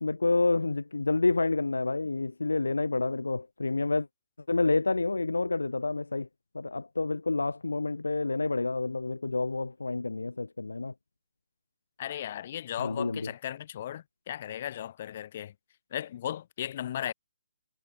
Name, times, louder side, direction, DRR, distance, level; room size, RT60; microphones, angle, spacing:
voice 1, 0.0-4.1 4.5-6.3 6.5-10.9 12.8-13.3, left 3 dB, 80° left, 0.3 m, -28 dB
voice 2, 12.0-15.5 15.9-17.1, left 11 dB, 40° left, 1.6 m, -36 dB
figure-of-eight pair, 140°, 0 cm